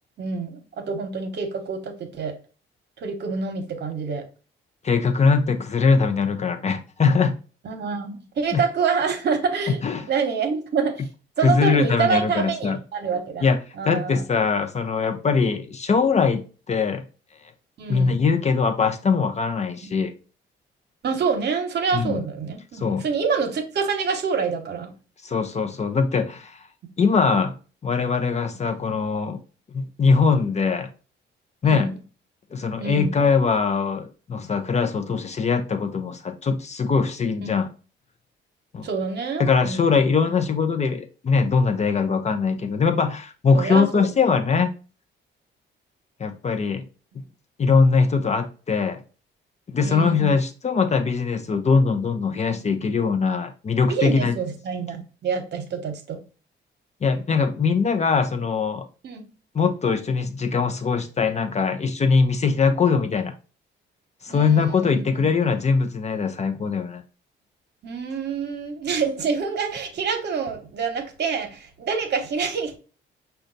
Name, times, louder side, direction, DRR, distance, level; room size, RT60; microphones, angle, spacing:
voice 1, 0.2-2.4 3.0-4.3 7.6-9.8 10.1-11.1 11.4-13.5 13.8-14.2 17.8-18.2 19.8-19.9 21.0-24.9 31.6-32.0 32.8-33.1 37.4-37.6 38.8-40.0 43.5-44.1 49.8-50.3 53.9-56.2 59.0-59.3 64.3-65.5 67.8-72.8, right 5 dB, 60° right, 0.9 m, -27 dB
voice 2, 4.8-7.4 8.5-8.6 9.7-10.1 11.4-12.8 13.4-13.6 13.8-17.0 17.9-20.1 21.9-22.1 22.7-23.0 25.2-26.6 27.0-27.5 27.8-29.4 29.7-30.9 31.6-31.9 32.5-37.7 38.7-38.9 39.4-44.7 46.2-46.8 47.6-49.0 49.7-54.4 57.0-58.9 59.5-63.3 64.2-67.0, left 5 dB, 35° left, 0.5 m, -21 dB
5.1 x 2.3 x 3.9 m
cardioid pair, 90°, 20 cm